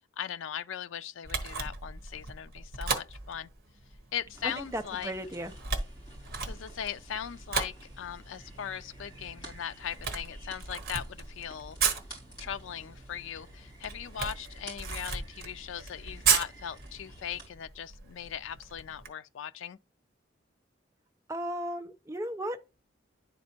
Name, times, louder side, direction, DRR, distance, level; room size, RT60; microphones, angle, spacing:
voice 1, 0.2-3.5 4.1-5.1 6.4-11.8 12.4-19.8, left 9 dB, 80° left, 0.4 m, -39 dB
Camera, 1.2-19.1, right 5 dB, 50° right, 1.1 m, -36 dB
sound 1, 4.3-17.5, right 1 dB, 25° left, 4.1 m, -50 dB
voice 2, 4.6-5.5 21.3-22.6, right 1 dB, 15° right, 0.6 m, -35 dB
10.5 x 4.2 x 2.9 m
head